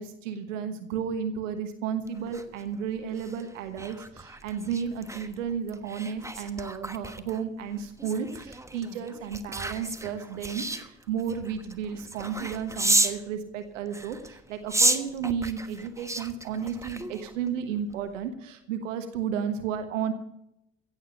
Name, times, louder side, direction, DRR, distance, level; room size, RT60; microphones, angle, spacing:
voice 1, 0.0-20.1, right 7 dB, 80° right, 9 dB, 1.4 m, -33 dB
sound 1, 2.1-13.2 13.9-17.5 17.9-18.1, right 2 dB, 10° right, 1.3 m, -32 dB
16.0 x 8.0 x 8.1 m, 0.79 s
hypercardioid pair, 50°, 37 cm